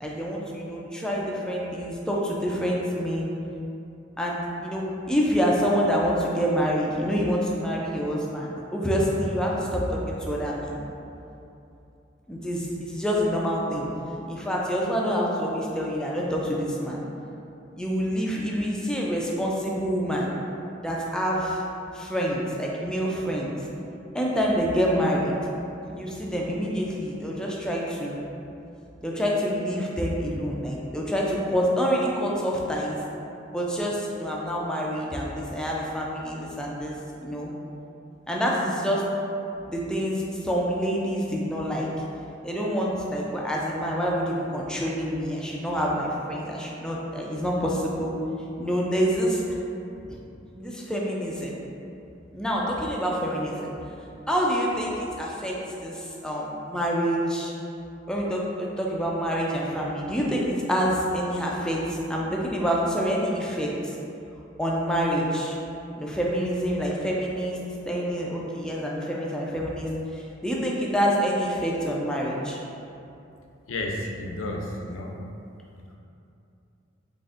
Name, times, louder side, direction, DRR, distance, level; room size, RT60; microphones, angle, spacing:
voice 1, 0.0-3.3 4.2-10.8 12.3-13.9 14.3-17.0 17.8-20.3 20.8-21.6 21.9-23.5 24.1-25.3 25.9-28.2 29.0-33.0 33.5-37.0 37.2-37.5 38.3-39.1 39.6-41.9 42.4-48.2 48.6-49.4 50.5-51.6 52.3-53.7 54.3-57.5 58.1-63.9 64.6-65.6 66.0-67.6 67.9-72.6, equal, 5° left, -4 dB, 0.4 m, -27 dB
voice 2, 73.7-75.1, left 1 dB, 75° left, 0 dB, 0.5 m, -31 dB
4.1 x 3.3 x 2.4 m, 2.7 s
head